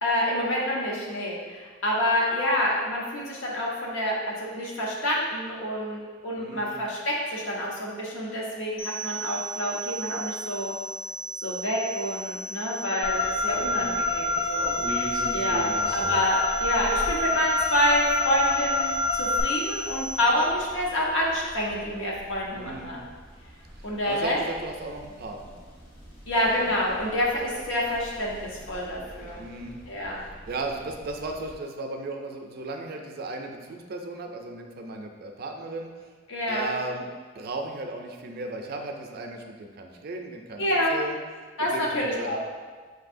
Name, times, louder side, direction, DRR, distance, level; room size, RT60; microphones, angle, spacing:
voice 1, 0.0-10.7 11.4-18.9 19.2-23.0 23.8-24.4 26.3-29.4 29.9-30.2 36.3-36.7 40.6-40.9 41.6-42.4, left 1 dB, 80° left, -3 dB, 0.9 m, -27 dB
voice 2, 6.4-6.8 13.5-14.0 15.6-15.9 22.5-23.0 24.1-25.6 29.4-29.8 30.5-35.9 36.5-37.1 37.4-41.2 41.6-42.4, right 2 dB, 50° right, 3 dB, 0.4 m, -36 dB
sound 1, 8.8-20.2, equal, 65° left, 1.4 m, -36 dB
Car, 13.0-19.4, left 2 dB, 25° left, 0.3 m, -27 dB
sound 2, 14.6-31.5, right 1 dB, 45° left, 0.9 m, -43 dB
6.0 x 2.6 x 2.5 m, 1.5 s
head